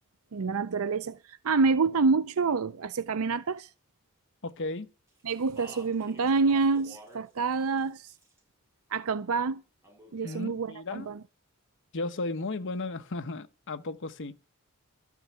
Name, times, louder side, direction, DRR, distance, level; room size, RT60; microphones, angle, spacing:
voice 1, 0.3-3.7 5.2-8.1 8.9-9.6 10.1-11.2, right 4 dB, 75° right, 0.5 m, -27 dB
voice 2, 4.4-4.9 10.2-11.1 11.9-14.4, left 2 dB, 60° left, 1.0 m, -35 dB
Speech, 5.3-7.2 7.5-8.4 9.8-10.5, right 1 dB, 10° right, 7.3 m, -50 dB
13.5 x 6.4 x 8.6 m
head